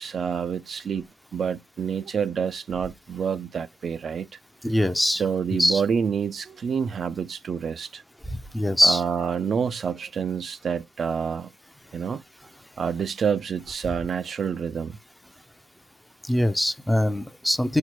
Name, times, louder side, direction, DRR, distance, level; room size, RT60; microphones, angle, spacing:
voice 1, 0.0-4.3 5.2-8.0 8.8-11.5 11.9-12.2 12.8-15.0, right 7 dB, 55° right, 0.3 m, -28 dB
voice 2, 4.6-5.2 5.6-5.8 8.3-9.0 16.2-17.8, left 1 dB, 5° left, 0.5 m, -22 dB
4.3 x 2.1 x 4.5 m
cardioid pair, 85°, 0 cm